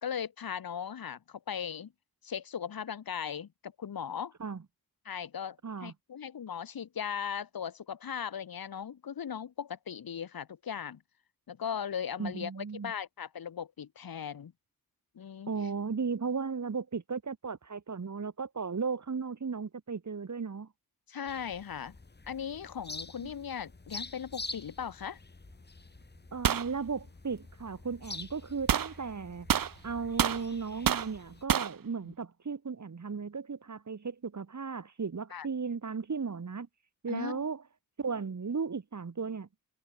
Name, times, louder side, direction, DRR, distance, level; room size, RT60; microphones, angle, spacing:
voice 1, 0.0-1.9 2.2-4.3 5.0-11.0 11.5-14.5 15.1-15.5 21.1-21.9 22.3-25.2 32.0-32.1 35.3-35.5 37.1-37.5, left 8 dB, 90° left, 1.6 m, -38 dB
voice 2, 5.6-5.9 12.2-12.9 15.5-20.7 23.2-23.3 26.3-29.5 29.8-36.7 37.0-37.6 38.0-39.5, right 5 dB, 55° right, 2.6 m, -35 dB
sound 1, 21.3-31.5, left 3 dB, 30° left, 2.1 m, -47 dB
sound 2, 26.4-26.7 28.7-28.9 29.5-30.4 30.9-31.1 31.5-31.7, right 9 dB, 70° right, 0.9 m, -27 dB
wide cardioid pair, 85°, 35 cm